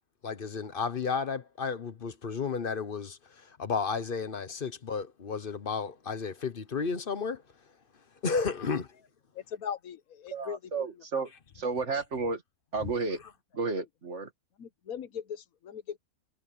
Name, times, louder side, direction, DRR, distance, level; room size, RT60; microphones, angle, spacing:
voice 1, 0.2-3.2 3.6-7.4 8.2-8.9, left 5 dB, 40° left, 1.0 m, -32 dB
voice 2, 9.3-11.2 11.8-11.9 14.6-16.0, left 8 dB, 65° left, 1.5 m, -40 dB
voice 3, 10.3-11.3 11.6-12.4 12.7-13.2 13.5-14.3, right 4 dB, 50° right, 2.3 m, -32 dB
omnidirectional pair, 1.6 m